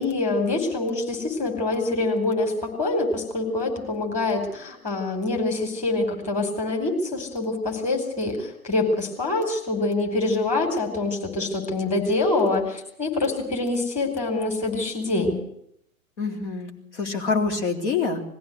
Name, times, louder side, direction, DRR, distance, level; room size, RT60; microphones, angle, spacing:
voice 1, 0.0-15.4, left 2 dB, 15° left, 1 dB, 5.0 m, -25 dB
voice 2, 16.2-18.2, left 4 dB, 55° left, 4 dB, 3.7 m, -26 dB
21.5 x 15.5 x 8.1 m, 0.72 s
figure-of-eight pair, 115°, 43 cm